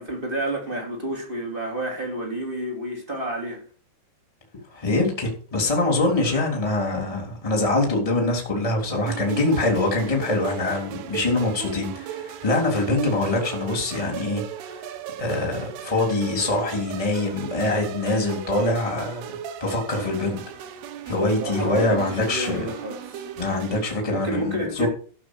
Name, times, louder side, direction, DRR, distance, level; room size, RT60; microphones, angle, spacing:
voice 1, 0.0-3.6 21.4-23.3 24.1-24.9, right 1 dB, 15° right, 2.5 m, -30 dB
voice 2, 4.7-14.9 15.2-19.3 19.6-20.4 21.0-22.7 23.4-24.9, left 2 dB, 10° left, 2.7 m, -24 dB
sound 1, 9.1-23.8, right 9 dB, 70° right, 2.8 m, -37 dB
14.5 x 6.4 x 6.4 m
omnidirectional pair, 5.4 m